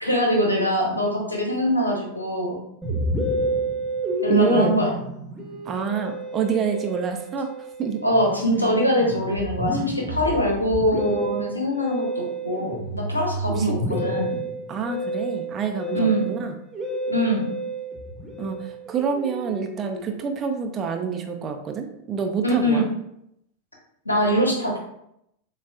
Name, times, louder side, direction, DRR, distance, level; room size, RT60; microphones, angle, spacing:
voice 1, 0.0-2.6 4.2-4.9 8.0-14.4 15.9-16.3 17.1-17.5 22.4-22.8 24.0-24.8, equal, 85° left, -1 dB, 1.1 m, -23 dB
Musical instrument, 2.8-20.4, right 1 dB, 10° right, 1.1 m, -30 dB
voice 2, 4.3-4.7 5.6-7.5 7.8-8.0 13.6-13.8 14.7-16.6 18.4-22.9, right 6 dB, 25° right, 4 dB, 0.5 m, -27 dB
7.0 x 2.4 x 2.4 m, 0.78 s
figure-of-eight pair, 90°, 0 cm